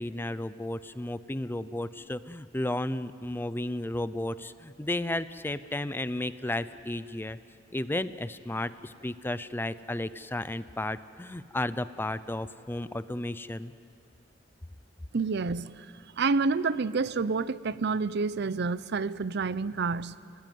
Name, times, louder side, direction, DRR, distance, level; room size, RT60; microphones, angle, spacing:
voice 1, 0.0-7.4 7.7-13.7, left 1 dB, 10° left, 14 dB, 0.5 m, -33 dB
voice 2, 15.1-20.2, right 4 dB, 60° right, 17 dB, 0.6 m, -29 dB
27.0 x 18.0 x 9.4 m, 2.4 s
head